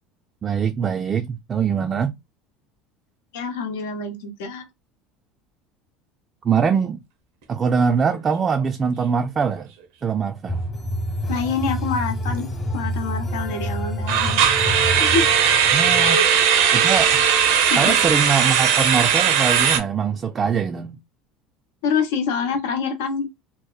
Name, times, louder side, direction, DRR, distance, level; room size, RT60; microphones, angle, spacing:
voice 1, 0.4-2.1 6.4-7.0 7.5-9.7 10.0-10.6 15.7-16.2 16.7-17.2 17.8-21.0, right 6 dB, 35° right, 0.3 m, -23 dB
voice 2, 3.3-4.7 11.3-14.4 15.0-15.3 16.0-16.3 17.7-18.0 21.8-23.3, left 5 dB, 85° left, 0.7 m, -26 dB
sound 1, 7.9-8.2 8.4-8.6 9.1-9.2 14.1-19.8, right 8 dB, 75° right, 0.6 m, -18 dB
sound 2, 10.5-16.1, equal, 30° left, 1.0 m, -28 dB
2.8 x 2.0 x 2.3 m
supercardioid pair, 90°, 0 cm